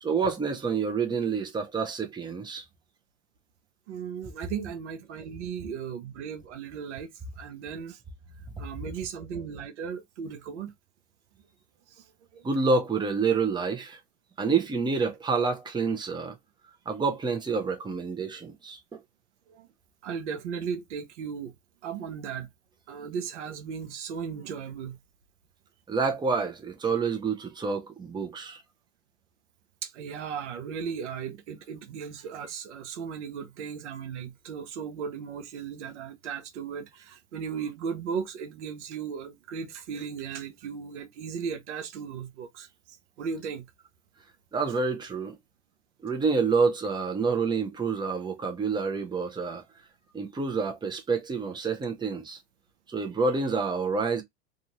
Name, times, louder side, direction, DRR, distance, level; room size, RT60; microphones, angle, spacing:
voice 1, 0.0-2.6 12.4-14.0 14.4-16.3 16.9-19.0 25.9-28.6 44.5-45.4 46.0-49.6 50.1-52.4 52.9-54.2, right 4 dB, 15° right, 0.7 m, -28 dB
voice 2, 3.9-7.1 7.4-8.0 8.6-10.7 11.9-12.1 12.3-12.4 19.5-19.7 20.0-21.5 21.8-22.5 22.9-25.0 29.8-43.7, right 6 dB, 80° right, 0.8 m, -36 dB
2.6 x 2.6 x 2.9 m
hypercardioid pair, 90°, 35 cm